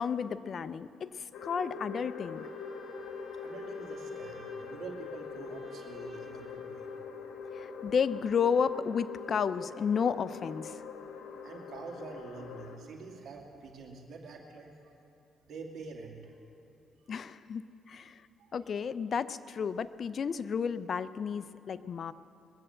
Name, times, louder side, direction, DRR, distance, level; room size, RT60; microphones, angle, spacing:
voice 1, 0.0-2.5 7.5-10.8 17.1-17.6 17.9-18.2 18.5-22.1, left 6 dB, 50° left, 14 dB, 0.5 m, -32 dB
sound 1, 1.3-12.8, left 5 dB, 75° left, 1.6 m, -43 dB
Bowed string instrument, 2.3-7.0, right 3 dB, 30° right, 2.3 m, -60 dB
voice 2, 3.4-6.9 11.4-14.7 15.4-16.4, right 4 dB, 65° right, 1 dB, 2.3 m, -46 dB
21.5 x 7.7 x 7.7 m, 2.8 s
cardioid pair, 90°, 0 cm